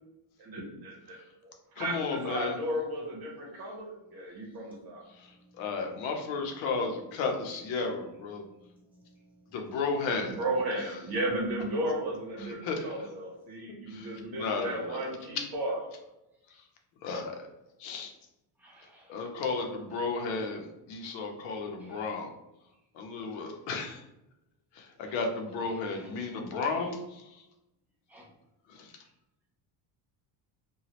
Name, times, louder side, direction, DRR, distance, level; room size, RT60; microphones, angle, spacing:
voice 1, 0.4-1.2 1.4-5.0 10.2-15.8, right 1 dB, 50° right, -1 dB, 1.1 m, -34 dB
voice 2, 1.8-2.5 5.1-8.4 9.5-10.4 12.4-12.9 13.9-15.4 17.0-17.5 17.8-18.1 19.1-22.3 22.9-24.0 24.7-27.4 28.7-28.9, left 4 dB, 80° left, 3 dB, 0.8 m, -34 dB
voice 3, 8.7-9.3 18.6-19.1 21.8-22.0 25.9-26.1 28.1-28.2, equal, 5° right, -5 dB, 0.7 m, -57 dB
2.9 x 2.3 x 2.9 m, 0.92 s
cardioid pair, 135°, 47 cm